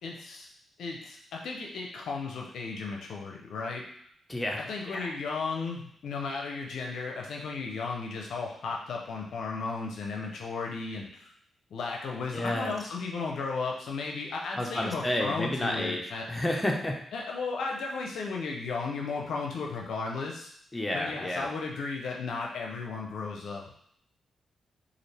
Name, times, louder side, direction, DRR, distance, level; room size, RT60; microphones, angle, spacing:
voice 1, 0.0-0.5 0.8-3.8 4.6-11.3 11.7-16.3 17.1-20.5 20.9-23.7, left 4 dB, 75° left, 0 dB, 0.5 m, -35 dB
voice 2, 4.3-5.1 12.3-12.7 14.6-16.9 20.7-21.5, left 1 dB, 20° left, 1 dB, 0.8 m, -31 dB
4.1 x 2.5 x 3.3 m, 0.67 s
supercardioid pair, 55°, 0 cm